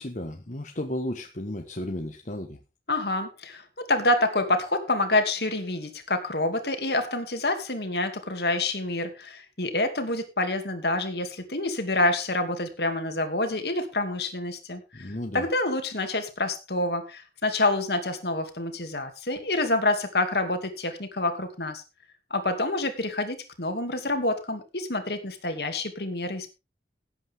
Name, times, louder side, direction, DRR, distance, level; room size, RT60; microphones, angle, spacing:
voice 1, 0.0-2.6 14.9-15.5, left 1 dB, 45° left, 3 dB, 1.4 m, -34 dB
voice 2, 2.9-21.8 22.3-26.5, left 2 dB, 65° left, 7 dB, 2.6 m, -27 dB
17.0 x 8.9 x 3.7 m, 0.28 s
head